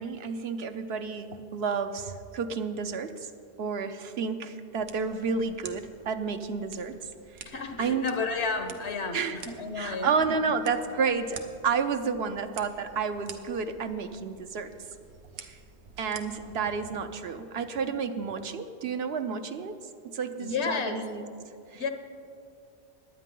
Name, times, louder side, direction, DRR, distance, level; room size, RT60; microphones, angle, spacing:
voice 1, 0.0-3.3 3.6-7.0 7.3-7.4 7.8-8.1 9.1-9.4 9.7-14.7 15.4-15.6 16.0-19.8 20.1-21.3 21.7-21.9, right 5 dB, 70° right, 8 dB, 1.0 m, -31 dB
sound 1, 4.7-16.7, right 5 dB, 90° right, 1.2 m, -49 dB
voice 2, 7.5-10.1 20.4-21.0 21.7-21.9, left 4 dB, 80° left, 6 dB, 1.4 m, -32 dB
21.5 x 9.1 x 3.8 m, 2.4 s
omnidirectional pair, 1.1 m